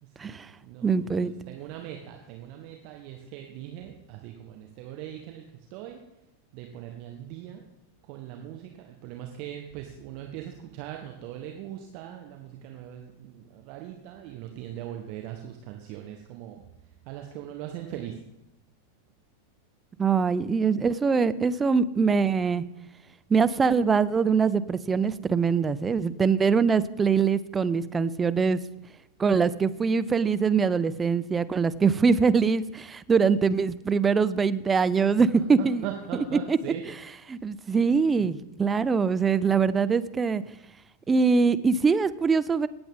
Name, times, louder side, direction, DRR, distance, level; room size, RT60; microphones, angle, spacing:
voice 1, 0.0-6.0 6.5-7.6 8.0-16.6 17.0-18.1 35.6-36.8, right 11 dB, 45° right, 3 dB, 1.2 m, -40 dB
voice 2, 0.8-1.3 20.0-22.6 23.3-28.6 29.2-35.8 36.5-36.6 37.3-40.4 41.1-42.7, right 5 dB, 15° right, 14 dB, 0.6 m, -23 dB
17.5 x 7.9 x 3.8 m, 0.93 s
figure-of-eight pair, 90°, 0 cm